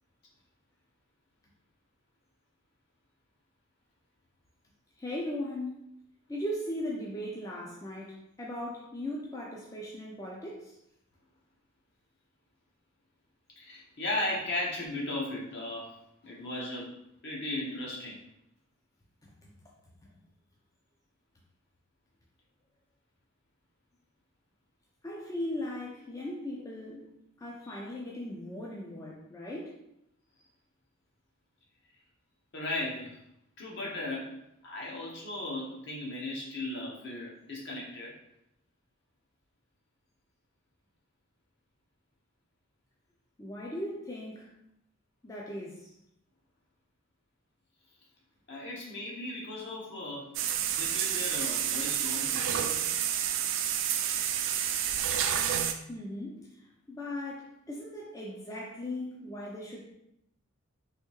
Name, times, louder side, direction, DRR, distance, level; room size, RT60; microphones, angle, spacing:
voice 1, 5.0-5.8 6.3-10.7 19.2-19.7 25.0-27.0 27.4-29.8 43.4-44.5 45.2-45.9 55.9-59.8, left 1 dB, 15° left, -4 dB, 0.4 m, -38 dB
voice 2, 13.6-15.9 16.2-16.9 17.2-18.2 27.6-27.7 32.5-33.2 33.6-38.1 48.5-50.3 50.7-52.7, left 2 dB, 55° left, -3 dB, 0.9 m, -36 dB
sound 1, 50.3-55.7, right 9 dB, 60° right, 0.3 m, -29 dB
3.4 x 2.7 x 2.9 m, 0.79 s
head